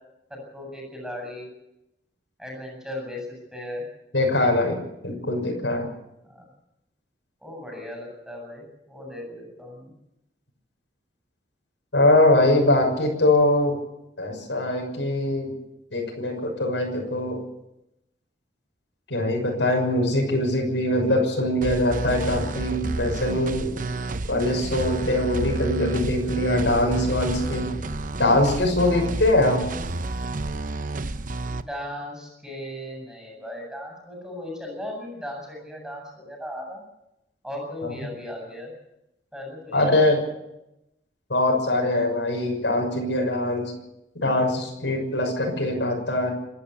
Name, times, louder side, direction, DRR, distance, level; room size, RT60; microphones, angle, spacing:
voice 1, 0.3-1.5 2.4-3.8 6.2-6.4 7.4-9.9 31.5-36.8 37.4-38.7 39.3-40.0 40.3-40.4, left 1 dB, 5° right, 0 dB, 7.8 m, -37 dB
voice 2, 4.1-5.9 11.9-13.8 14.2-15.5 15.9-17.4 19.1-23.7 24.3-27.7 28.2-29.6 37.8-37.9 39.7-40.2 41.3-43.7 44.1-46.3, left 1 dB, 90° left, 1 dB, 6.5 m, -22 dB
sound 1, 21.6-31.6, right 2 dB, 50° right, 0.8 m, -30 dB
27.5 x 12.0 x 8.4 m, 0.86 s
head